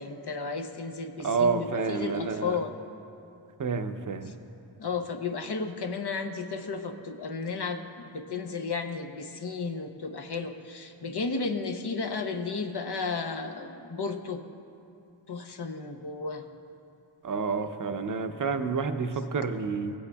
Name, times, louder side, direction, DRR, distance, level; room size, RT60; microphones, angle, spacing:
voice 1, 0.0-2.7 4.8-14.4 15.3-16.5 17.5-17.6, left 4 dB, 55° left, 5 dB, 0.7 m, -33 dB
voice 2, 1.2-2.6 3.6-4.3 17.2-19.9, right 5 dB, 40° right, 7 dB, 0.6 m, -29 dB
17.5 x 8.3 x 2.3 m, 2.6 s
cardioid pair, 45°, 48 cm